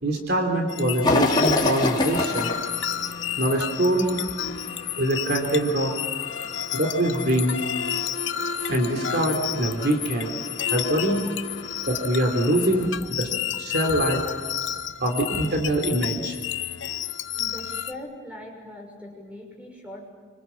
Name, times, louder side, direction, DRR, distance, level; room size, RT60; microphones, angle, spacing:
voice 1, 0.0-2.5 3.4-4.2 5.0-5.9 6.7-7.5 8.7-10.4 10.7-11.2 11.8-13.3 13.6-14.2 15.0-16.4, right 1 dB, 55° right, 3 dB, 3.3 m, -24 dB
sound 1, 0.7-17.9, left 9 dB, 70° left, 0.9 m, -31 dB
sound 2, 1.0-12.9, left 2 dB, 20° left, 3.3 m, -30 dB
voice 2, 17.4-20.1, left 1 dB, 5° right, 0 dB, 6.3 m, -41 dB
26.5 x 25.5 x 7.4 m, 1.5 s
head